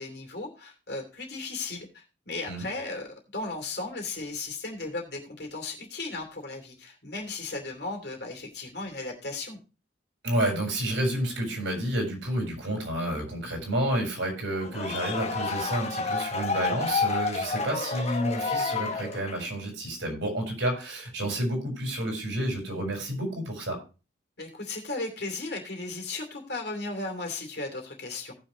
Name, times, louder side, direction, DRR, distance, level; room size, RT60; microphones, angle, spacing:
voice 1, 0.0-9.6 24.4-28.3, left 3 dB, 60° left, 2 dB, 2.8 m, -36 dB
voice 2, 10.2-23.8, right 1 dB, 80° right, 2 dB, 4.6 m, -30 dB
sound 1, 14.5-19.6, left 4 dB, 35° left, 1.1 m, -30 dB
17.5 x 6.4 x 3.1 m, 0.32 s
head